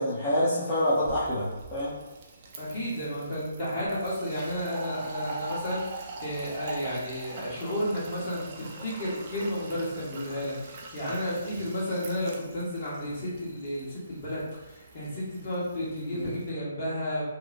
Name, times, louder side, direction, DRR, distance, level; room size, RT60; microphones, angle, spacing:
voice 1, 0.0-1.9 16.1-16.3, equal, 20° left, -11 dB, 0.6 m, -27 dB
Fill (with liquid), 0.7-16.5, right 3 dB, 40° right, 0.4 m, -44 dB
voice 2, 2.6-17.2, equal, 40° left, -7 dB, 1.2 m, -32 dB
2.9 x 2.0 x 2.5 m, 1.1 s
figure-of-eight pair, 140°, 0 cm